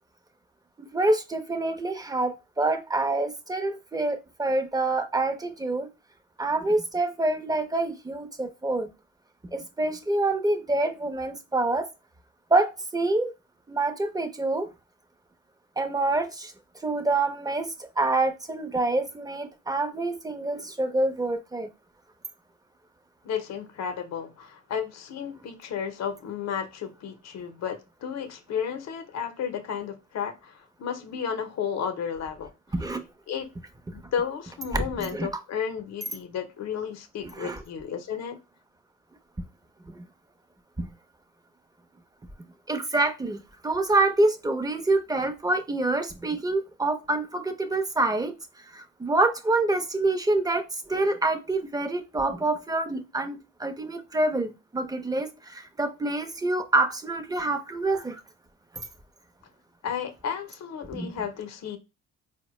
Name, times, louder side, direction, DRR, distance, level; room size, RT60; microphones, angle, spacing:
voice 1, 0.8-5.9 6.4-8.9 9.5-11.9 12.5-13.3 13.7-14.7 15.8-16.5 16.8-21.7 32.7-33.0 34.7-35.4 37.4-37.6 39.9-40.0 40.8-40.9 42.7-48.3 48.7-58.2 60.9-61.1, right 2 dB, 10° right, 0.7 m, -26 dB
voice 2, 23.2-32.5 33.3-33.5 33.9-38.4 59.8-61.8, left 7 dB, 60° left, 0.7 m, -33 dB
4.3 x 2.2 x 3.0 m
cardioid pair, 90°, 30 cm